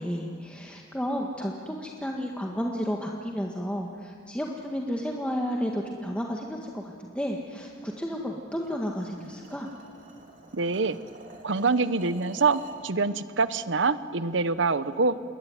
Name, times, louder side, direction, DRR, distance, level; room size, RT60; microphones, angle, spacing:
voice 1, 0.0-9.7, equal, 5° left, 0 dB, 1.7 m, -32 dB
sound 1, 8.5-12.9, right 2 dB, 45° right, 3.6 m, -49 dB
voice 2, 10.5-11.0 11.4-15.1, right 4 dB, 65° right, 14 dB, 1.0 m, -25 dB
28.0 x 22.0 x 9.5 m, 2.4 s
head